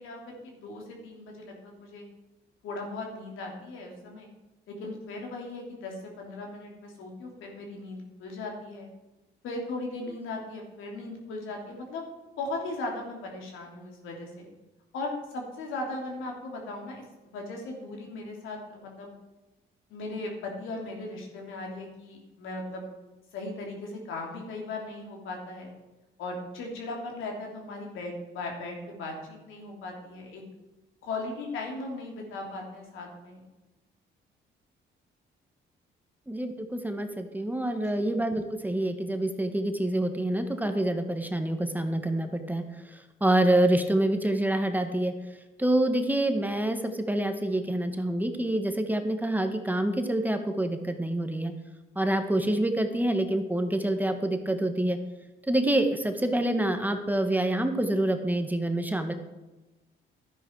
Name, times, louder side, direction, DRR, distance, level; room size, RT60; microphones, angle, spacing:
voice 1, 0.0-2.1 2.6-4.3 4.7-8.9 9.4-12.0 12.4-14.5 14.9-17.0 17.3-19.1 19.9-22.9 23.3-25.7 26.2-30.4 31.0-33.4 37.9-38.2, left 2 dB, 90° left, 0 dB, 3.2 m, -38 dB
voice 2, 36.3-45.1 45.6-51.5 51.9-55.0 55.5-59.1, right 1 dB, 10° right, 6 dB, 1.3 m, -27 dB
11.5 x 10.0 x 4.7 m, 1.1 s
cardioid pair, 90°, 20 cm